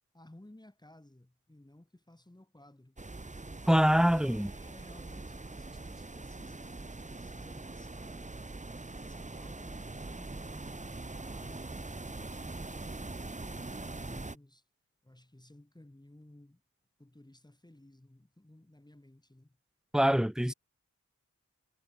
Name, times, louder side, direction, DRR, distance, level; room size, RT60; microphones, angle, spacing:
voice 1, 0.1-3.0 3.7-8.4 8.9-14.6 15.0-16.6 17.0-19.6, left 1 dB, 15° left, 3.2 m, -57 dB
sound 1, 3.0-14.4, right 2 dB, 25° right, 1.5 m, -43 dB
voice 2, 3.7-4.5 19.9-20.5, equal, ahead, 0.6 m, -24 dB
wide cardioid pair, 105°, 30 cm